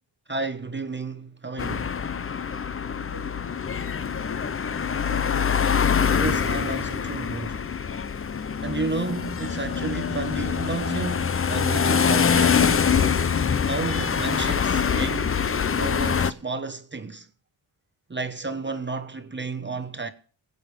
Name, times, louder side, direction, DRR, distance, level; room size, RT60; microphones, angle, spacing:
voice 1, 0.3-1.9 6.2-7.6 8.6-12.9 13.6-15.4 15.8-17.3 18.1-20.1, right 3 dB, 25° right, 1.1 m, -32 dB
sound 1, 1.6-16.3, left 6 dB, 30° left, 0.6 m, -24 dB
voice 2, 2.8-5.5, left 1 dB, 70° left, 5.4 m, -47 dB
20.0 x 8.3 x 5.2 m
cardioid pair, 90°, 46 cm